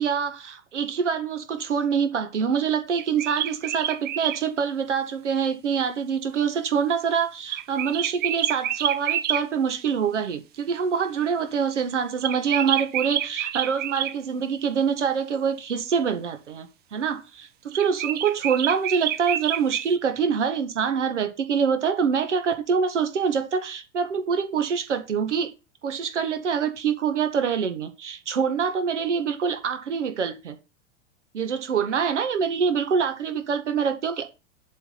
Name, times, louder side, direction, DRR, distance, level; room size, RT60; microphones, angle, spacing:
voice 1, 0.0-25.5 25.8-30.6 31.3-34.3, right 6 dB, 75° right, 1.6 m, -25 dB
sound 1, 2.9-4.4 7.5-9.4 12.2-14.1 17.7-19.9, right 11 dB, 25° right, 0.7 m, -28 dB
7.5 x 4.5 x 5.8 m
figure-of-eight pair, 90°, 36 cm